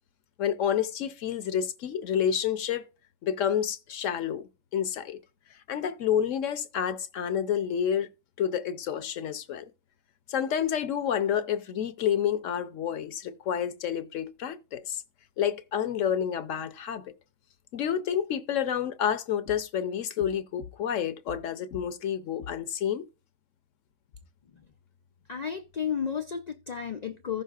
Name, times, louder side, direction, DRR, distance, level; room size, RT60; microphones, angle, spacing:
voice 1, 0.4-2.9 3.2-5.2 5.7-8.1 8.4-9.7 10.3-15.0 15.4-17.1 17.7-23.0, left 9 dB, 70° left, 1.0 m, -29 dB
voice 2, 25.3-27.4, left 7 dB, 85° left, 0.3 m, -33 dB
15.5 x 6.5 x 2.4 m
omnidirectional pair, 1.4 m